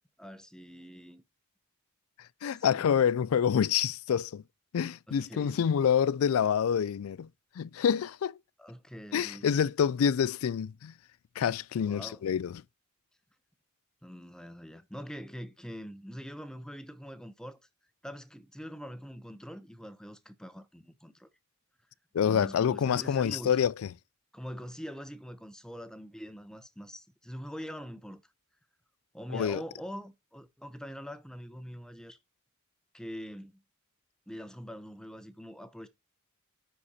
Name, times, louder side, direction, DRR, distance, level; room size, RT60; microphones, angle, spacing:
voice 1, 0.2-1.2 5.1-5.6 8.6-9.5 11.8-12.2 14.0-17.6 18.0-21.3 22.2-23.5 24.3-28.2 29.1-32.2 32.9-33.6 34.3-35.9, equal, 5° left, 0.7 m, -44 dB
voice 2, 2.4-4.4 4.7-7.3 7.6-8.4 9.1-10.9 11.4-12.6 22.1-23.9 29.3-29.6, left 8 dB, 75° left, 0.4 m, -27 dB
9.9 x 4.2 x 4.2 m
head